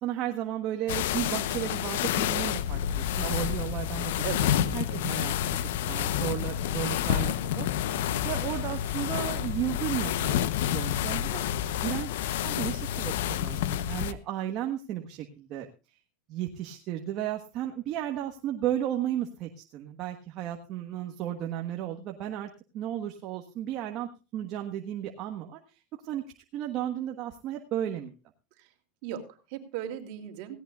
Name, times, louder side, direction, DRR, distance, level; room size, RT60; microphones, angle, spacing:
voice 1, 0.0-4.1 4.6-5.3 5.8-7.7 8.2-11.4 11.8-12.1 12.4-15.7 16.3-22.5 22.7-25.6 25.9-26.2 26.5-28.1, right 11 dB, 45° right, 4 dB, 1.4 m, -34 dB
sound 1, 0.9-14.1, left 11 dB, 80° left, 0.9 m, -29 dB
voice 2, 3.2-3.6 4.2-5.0 7.9-8.3 28.6-28.7 29.0-30.6, right 10 dB, 60° right, 5 dB, 2.9 m, -39 dB
17.5 x 17.0 x 2.4 m, 0.30 s
supercardioid pair, 140°, 0 cm